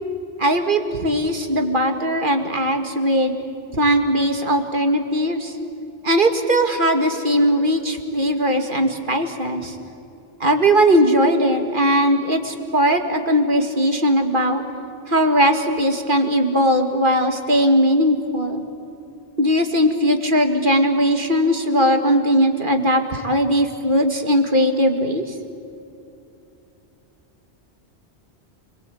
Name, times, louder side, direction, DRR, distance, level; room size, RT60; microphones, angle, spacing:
voice 1, 0.4-3.3 3.7-5.5 6.0-9.8 10.4-14.6 15.1-18.6 19.4-25.2, equal, 50° right, 5 dB, 2.3 m, -19 dB
29.0 x 22.5 x 8.5 m, 2.7 s
omnidirectional pair, 1.1 m